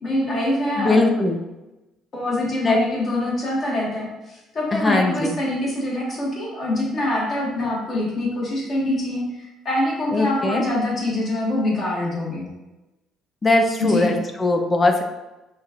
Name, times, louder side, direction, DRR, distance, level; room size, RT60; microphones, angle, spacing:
voice 1, 0.0-1.0 2.1-12.5 13.8-14.1, left 1 dB, 40° left, -5 dB, 1.4 m, -24 dB
voice 2, 0.8-1.4 2.6-2.8 4.7-5.4 10.1-10.6 13.4-15.0, left 2 dB, 25° left, 5 dB, 0.5 m, -20 dB
5.6 x 2.4 x 2.8 m, 1.0 s
cardioid pair, 110°, 0 cm